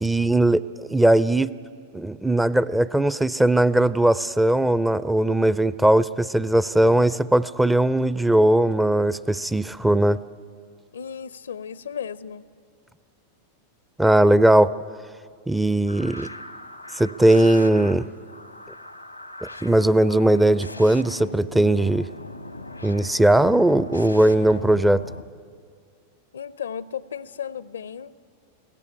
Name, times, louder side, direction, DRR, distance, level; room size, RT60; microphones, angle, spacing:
voice 1, 0.0-1.5 1.9-10.2 14.0-14.7 15.5-16.3 16.9-18.1 19.4-22.1 22.8-25.0, right 1 dB, 5° right, 17 dB, 0.5 m, -19 dB
voice 2, 10.9-12.4 26.3-28.1, left 8 dB, 70° left, 19 dB, 0.6 m, -34 dB
sound 1, 15.9-25.2, left 2 dB, 90° left, 1.0 m, -39 dB
22.5 x 16.5 x 9.9 m, 2.1 s
figure-of-eight pair, 90°, 0 cm